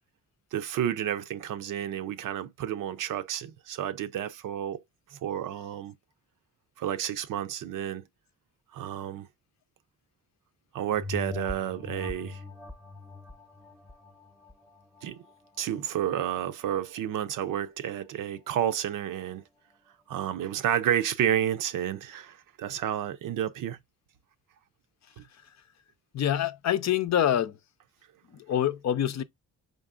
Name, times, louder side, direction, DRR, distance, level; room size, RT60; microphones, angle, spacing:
voice 1, 0.5-4.8 5.1-5.9 6.8-8.0 8.7-9.3 10.7-12.4 15.0-15.2 15.6-19.4 20.1-23.8 25.2-25.3, right 10 dB, 75° right, 0.6 m, -30 dB
sound 1, 10.9-15.9 16.4-16.5, left 3 dB, 5° left, 0.8 m, -41 dB
voice 2, 26.1-27.6 28.3-29.2, left 10 dB, 55° left, 0.6 m, -26 dB
5.1 x 3.8 x 2.4 m
cardioid pair, 75°, 33 cm